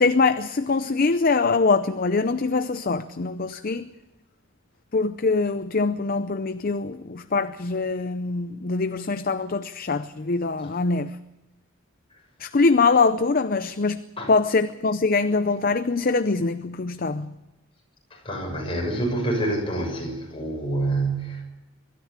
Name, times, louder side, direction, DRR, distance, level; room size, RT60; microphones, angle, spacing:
voice 1, 0.0-3.9 4.9-11.2 12.4-14.0 14.3-17.4, left 4 dB, 45° left, 0.6 m, -23 dB
voice 2, 18.2-21.4, right 2 dB, 25° left, 6.6 m, -27 dB
23.5 x 13.5 x 8.2 m
head